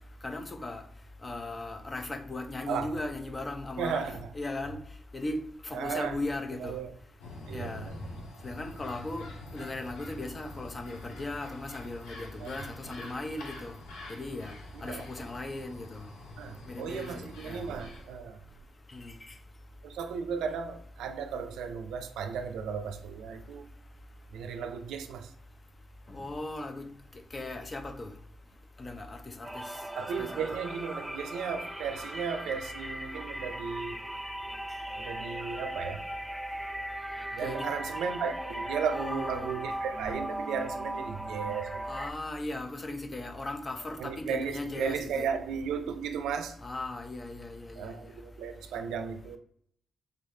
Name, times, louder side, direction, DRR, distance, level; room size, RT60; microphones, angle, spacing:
voice 1, 0.2-0.8 1.2-4.8 5.1-6.8 7.5-7.9 8.4-9.3 9.5-13.8 14.1-14.5 14.8-16.0 16.7-17.6 18.9-19.2 26.1-26.9 27.3-28.1 28.8-29.6 30.2-30.4 37.4-37.7 38.9-39.5 41.8-45.3 46.6-48.1, left 2 dB, 40° left, 0.7 m, -37 dB
voice 2, 3.8-4.3 5.7-6.2 6.6-6.9 7.5-7.9 12.4-12.5 14.8-15.0 16.4-18.4 19.8-23.7 24.3-25.3 30.0-34.1 35.0-36.0 37.3-41.8 44.0-46.6 47.8-49.4, right 6 dB, 85° right, 0.4 m, -35 dB
sound 1, 7.2-18.2, left 2 dB, 85° left, 0.8 m, -46 dB
sound 2, 29.4-42.1, right 1 dB, 5° right, 0.5 m, -38 dB
3.9 x 3.2 x 2.7 m
supercardioid pair, 50°, 0 cm